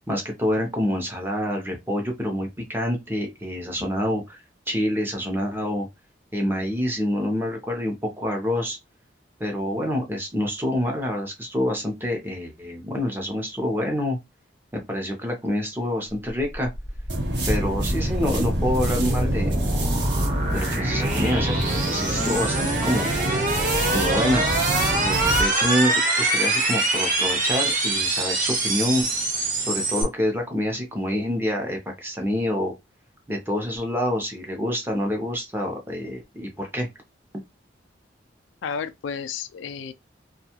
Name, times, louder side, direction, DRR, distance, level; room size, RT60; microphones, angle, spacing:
voice 1, 0.1-4.4 4.7-5.9 6.3-8.8 9.4-14.2 14.9-16.7 17.5-19.6 20.5-21.6 21.8-23.1 23.9-24.4 24.9-29.1 29.7-32.7 33.3-36.9, left 1 dB, 10° right, 0.7 m, -27 dB
sound 1, 16.5-30.0, right 2 dB, 45° right, 1.0 m, -25 dB
sound 2, 17.1-25.5, right 1 dB, 65° right, 0.9 m, -27 dB
voice 2, 38.6-39.9, left 6 dB, 80° left, 0.3 m, -32 dB
2.6 x 2.3 x 2.9 m
head